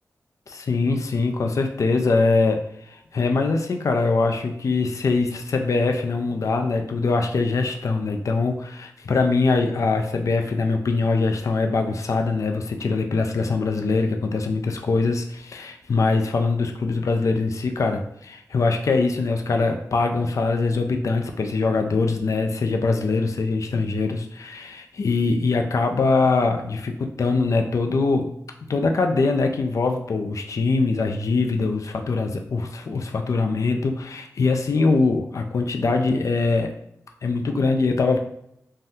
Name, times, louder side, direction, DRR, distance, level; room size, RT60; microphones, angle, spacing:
voice 1, 0.5-2.6 2.9-28.3 28.7-36.7 37.2-38.2, left 3 dB, 60° left, 4 dB, 0.4 m, -23 dB
2.7 x 2.1 x 3.5 m, 0.76 s
wide cardioid pair, 100°, 6 cm